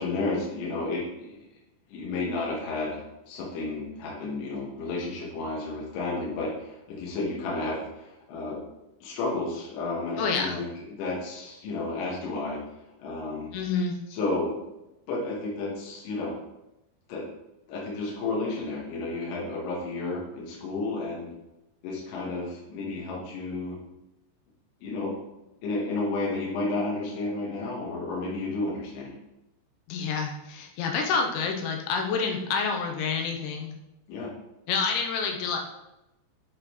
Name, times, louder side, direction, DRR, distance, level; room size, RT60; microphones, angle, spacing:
voice 1, 0.0-1.4 1.9-8.6 9.0-12.6 13.0-13.5 14.1-14.7 15.1-16.4 17.1-17.2 17.7-21.3 21.8-23.8 24.8-25.1 25.6-29.1 34.1-34.3, left 3 dB, 70° left, -4 dB, 3.4 m, -32 dB
voice 2, 10.2-10.6 13.5-14.0 29.9-33.7 34.7-35.6, left 5 dB, 90° left, 2 dB, 3.1 m, -28 dB
8.3 x 4.9 x 3.1 m, 0.93 s
omnidirectional pair, 5.2 m